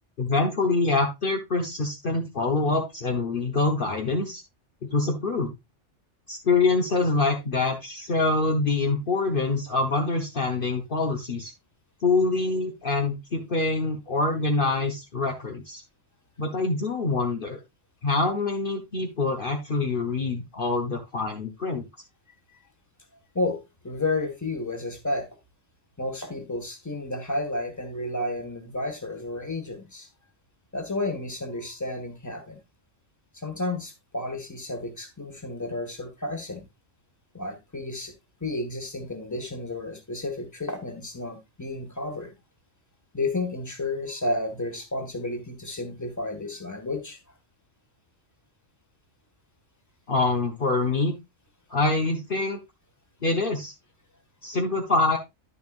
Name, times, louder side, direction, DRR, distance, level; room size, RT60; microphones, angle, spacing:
voice 1, 0.2-4.4 4.8-5.5 6.3-11.5 12.0-15.8 16.4-17.6 18.0-21.8 50.1-51.1 51.7-52.6 53.2-53.7 54.4-55.2, left 3 dB, 50° left, 1.1 m, -25 dB
voice 2, 23.3-25.3 26.0-30.1 30.7-32.6 33.3-36.6 37.3-38.1 38.4-42.3 43.1-47.2, left 2 dB, 15° left, 1.6 m, -31 dB
10.5 x 6.9 x 2.4 m
omnidirectional pair, 1.2 m